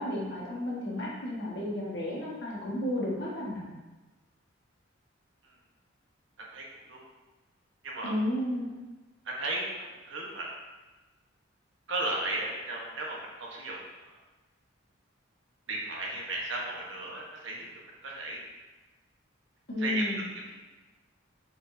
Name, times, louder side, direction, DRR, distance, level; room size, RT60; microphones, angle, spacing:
voice 1, 0.0-3.7 8.0-8.7 19.7-20.3, left 1 dB, 55° left, -5 dB, 1.6 m, -32 dB
voice 2, 6.5-7.0 7.8-8.1 9.2-10.5 11.9-14.2 15.7-17.7 18.0-18.4 19.8-20.1 20.4-20.5, right 2 dB, 65° right, -2 dB, 1.3 m, -35 dB
6.9 x 5.0 x 2.8 m, 1.2 s
head